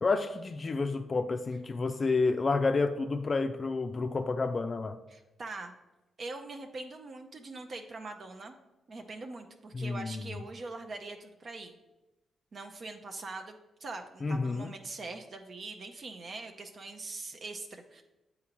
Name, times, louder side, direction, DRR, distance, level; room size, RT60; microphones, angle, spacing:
voice 1, 0.0-5.0 9.7-10.4 14.2-14.7, left 3 dB, 45° left, 7 dB, 0.3 m, -30 dB
voice 2, 5.1-5.7 6.2-8.6 8.9-11.7 12.5-18.0, right 3 dB, 55° right, 5 dB, 0.5 m, -42 dB
8.2 x 3.9 x 3.0 m, 1.0 s
supercardioid pair, 60°, 0 cm